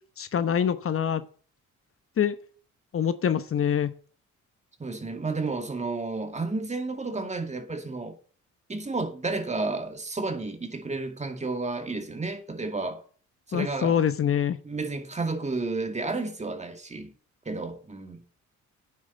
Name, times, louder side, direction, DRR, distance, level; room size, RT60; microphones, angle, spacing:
voice 1, 0.2-1.2 2.2-2.3 2.9-3.9 13.5-14.6, left 8 dB, 45° left, 0.9 m, -25 dB
voice 2, 4.8-8.2 8.7-13.0 13.5-14.0 14.6-17.1 17.5-18.2, right 3 dB, 25° right, 2.3 m, -31 dB
9.2 x 7.3 x 5.4 m
cardioid pair, 90°, 30 cm